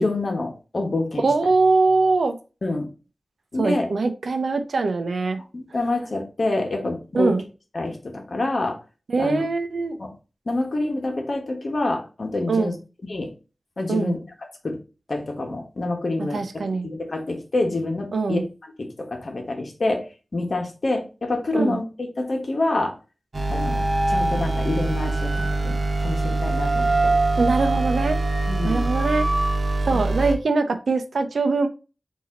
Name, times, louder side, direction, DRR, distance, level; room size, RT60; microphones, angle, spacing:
voice 1, 0.0-1.3 2.6-2.9 3.5-3.9 5.5-7.4 7.7-8.8 9.2-9.5 10.0-10.1 10.5-12.8 13.1-13.3 13.8-14.2 14.6-14.8 15.1-18.4 18.8-20.1 20.3-22.9 23.5-27.1 28.5-28.9 29.9-30.0, left 2 dB, 60° left, 3 dB, 1.2 m, -27 dB
voice 2, 1.2-2.3 3.6-5.4 7.1-7.4 9.1-10.0 12.5-12.7 13.9-14.1 16.3-16.9 18.1-18.4 21.5-21.8 27.4-28.2 28.6-29.3 29.9-31.7, right 3 dB, 85° right, 8 dB, 0.6 m, -22 dB
sound 1, 23.3-30.3, right 2 dB, 50° right, 1.0 m, -23 dB
4.2 x 2.7 x 3.7 m, 0.32 s
cardioid pair, 50°, 0 cm